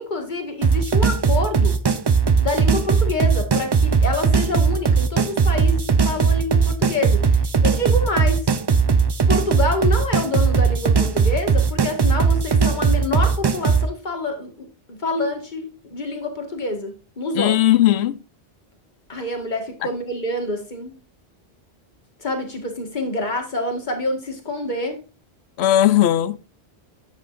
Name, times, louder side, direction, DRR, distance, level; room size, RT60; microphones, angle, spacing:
voice 1, 0.0-1.8 2.4-8.5 9.3-17.6 19.1-20.9 22.2-25.0, left 2 dB, 45° left, 1.8 m, -27 dB
sound 1, 0.6-13.9, right 5 dB, 40° right, 0.3 m, -18 dB
voice 2, 17.4-18.2 25.6-26.4, left 13 dB, 80° left, 0.9 m, -17 dB
10.0 x 7.5 x 2.5 m
omnidirectional pair, 1.1 m